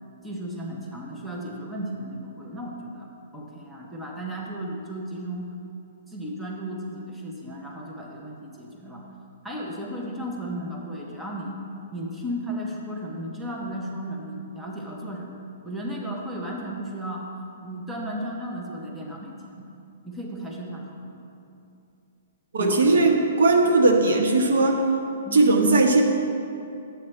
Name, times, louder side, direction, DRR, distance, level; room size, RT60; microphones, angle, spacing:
voice 1, 0.2-5.5 6.1-9.1 9.4-11.6 11.9-15.4 15.6-17.3 17.6-19.7 20.0-21.2 22.6-23.1 25.2-25.6, right 1 dB, 5° right, -3 dB, 0.7 m, -34 dB
voice 2, 22.5-24.8 25.3-26.0, right 2 dB, 80° right, 2 dB, 1.1 m, -18 dB
10.0 x 8.0 x 3.2 m, 2.7 s
hypercardioid pair, 170°, 0 cm